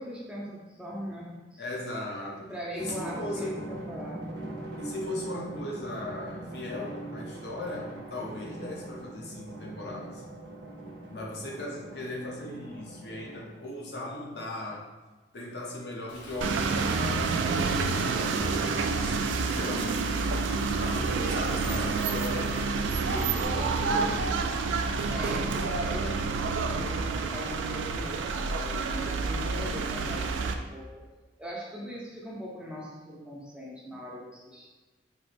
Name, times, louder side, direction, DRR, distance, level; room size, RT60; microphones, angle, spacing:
voice 1, 0.0-1.8 2.5-4.4 25.1-31.0 31.4-34.7, equal, 5° right, -5 dB, 0.6 m, -40 dB
voice 2, 1.6-3.6 4.8-10.2 11.1-14.9 15.3-20.2 20.7-24.6, left 1 dB, 60° left, -3 dB, 0.8 m, -38 dB
Drum, 2.8-13.8, right 2 dB, 70° right, 0.8 m, -42 dB
Rain, 16.1-23.5, left 1 dB, 80° left, 1.1 m, -47 dB
sound 1, 16.4-30.5, right 4 dB, 85° right, 0.3 m, -28 dB
4.5 x 3.0 x 2.5 m, 1.3 s
head